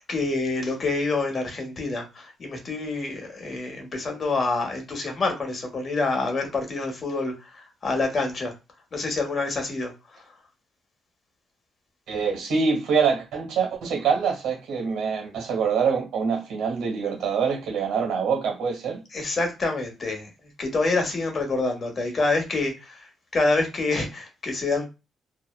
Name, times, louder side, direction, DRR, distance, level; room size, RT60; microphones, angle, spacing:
voice 1, 0.1-7.3 7.8-8.5 8.9-9.9 19.1-20.3 20.6-23.0 23.3-24.9, left 3 dB, 40° left, 0.9 m, -26 dB
voice 2, 12.1-19.0, right 6 dB, 85° right, 1.3 m, -25 dB
2.7 x 2.0 x 2.3 m
cardioid pair, 90°, 0 cm